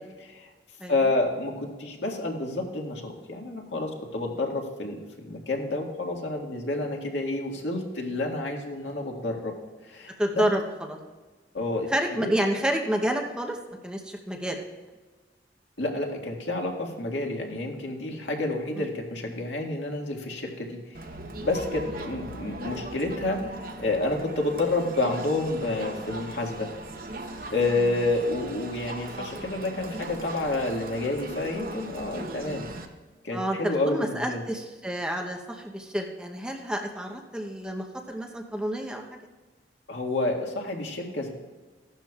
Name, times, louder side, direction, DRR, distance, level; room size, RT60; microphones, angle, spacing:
voice 1, 0.2-0.5 0.9-5.0 5.2-9.6 9.8-10.5 11.5-11.9 12.2-12.3 15.8-21.0 21.4-26.7 27.5-32.7 33.2-34.4 39.9-41.3, left 2 dB, 85° left, 0 dB, 1.9 m, -29 dB
voice 2, 10.2-11.0 11.9-13.6 13.8-14.6 18.8-18.9 33.3-39.2, right 1 dB, 5° right, 1 dB, 0.9 m, -29 dB
Crowd, 20.9-32.9, right 2 dB, 50° right, 0.9 m, -39 dB
15.5 x 12.0 x 2.4 m, 1.3 s
head